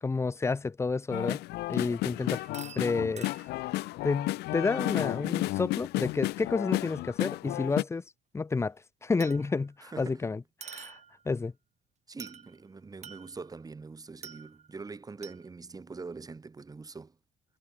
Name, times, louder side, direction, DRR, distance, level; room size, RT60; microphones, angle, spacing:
voice 1, 0.0-1.4 1.7-2.4 2.8-3.3 4.0-8.0 8.3-8.8 9.0-11.0 11.3-11.5, left 4 dB, 15° left, 0.6 m, -30 dB
sound 1, 1.1-7.8, left 19 dB, 75° left, 0.4 m, -32 dB
sound 2, 2.1-3.6 7.0-7.1 9.2-9.7 10.6-11.3 12.2-12.6 13.0-13.6 14.2-14.8 15.2-15.5, right 7 dB, 40° right, 4.7 m, -47 dB
voice 2, 9.8-10.2 12.1-17.1, right 4 dB, 20° right, 2.4 m, -43 dB
cardioid pair, 110°, 17 cm